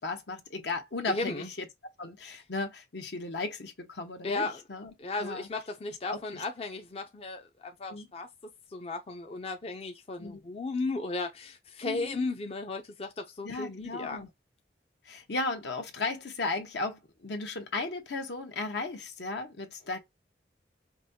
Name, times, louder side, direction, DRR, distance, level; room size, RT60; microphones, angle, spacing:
voice 1, 0.0-1.7 2.0-4.9 5.2-5.5 6.0-6.4 7.9-8.1 10.2-10.4 11.8-12.2 13.4-14.3 15.0-20.0, left 3 dB, 70° left, 1.0 m, -35 dB
voice 2, 1.1-1.5 4.2-4.6 5.0-8.3 8.7-14.2, left 3 dB, 35° left, 0.5 m, -35 dB
5.2 x 2.2 x 2.7 m
head